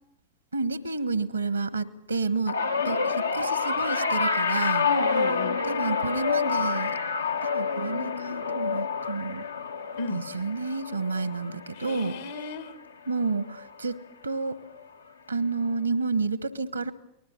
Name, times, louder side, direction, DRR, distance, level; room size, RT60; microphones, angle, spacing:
voice 1, 0.5-2.6 2.8-4.9 5.6-7.0 7.4-9.5 10.1-12.1 13.1-14.6 15.3-16.9, right 4 dB, 80° right, 1.2 m, -30 dB
sound 1, 2.5-12.9 13.3-13.7 14.8-14.9, left 5 dB, 75° left, 0.9 m, -28 dB
voice 2, 4.8-5.6 10.0-10.3 11.7-12.8, left 3 dB, 60° left, 1.2 m, -35 dB
29.5 x 20.0 x 7.2 m
figure-of-eight pair, 90°, 0 cm